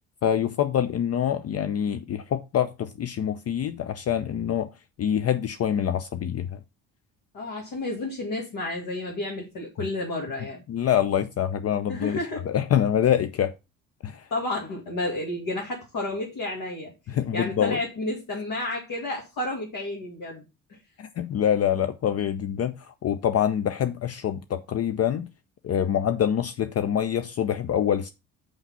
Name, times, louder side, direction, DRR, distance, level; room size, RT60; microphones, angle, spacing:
voice 1, 0.2-4.7 5.0-6.6 10.7-12.2 12.4-13.5 14.0-14.3 17.1-17.8 21.0-25.3 25.6-28.1, left 9 dB, 40° left, 0.6 m, -25 dB
voice 2, 7.3-10.6 11.9-12.5 14.3-16.9 17.3-20.4, left 2 dB, 55° left, 2.2 m, -31 dB
5.8 x 5.3 x 5.4 m
hypercardioid pair, 50°, 40 cm